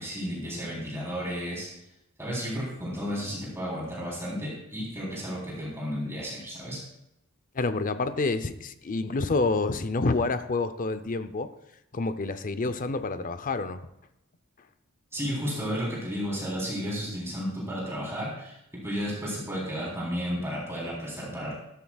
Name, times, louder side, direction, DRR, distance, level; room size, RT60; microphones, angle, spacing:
voice 1, 0.0-1.7 2.2-6.8 15.1-21.5, equal, 10° right, -6 dB, 3.7 m, -33 dB
voice 2, 7.5-11.5 11.9-13.8, left 3 dB, 40° left, 11 dB, 0.6 m, -28 dB
14.5 x 13.5 x 2.4 m, 0.85 s
head